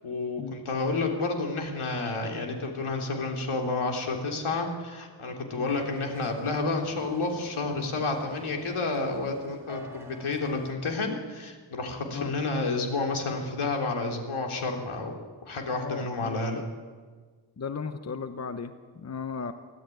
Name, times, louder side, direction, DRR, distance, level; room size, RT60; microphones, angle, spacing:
voice 1, 0.0-15.2 15.4-16.6, left 3 dB, 80° left, 2 dB, 3.5 m, -30 dB
sound 1, 5.7-10.7, equal, 5° right, 2.3 m, -48 dB
voice 2, 15.7-16.6 17.6-19.5, left 5 dB, 30° left, 9 dB, 0.9 m, -36 dB
23.5 x 15.5 x 9.2 m, 1.5 s
wide cardioid pair, 175°, 49 cm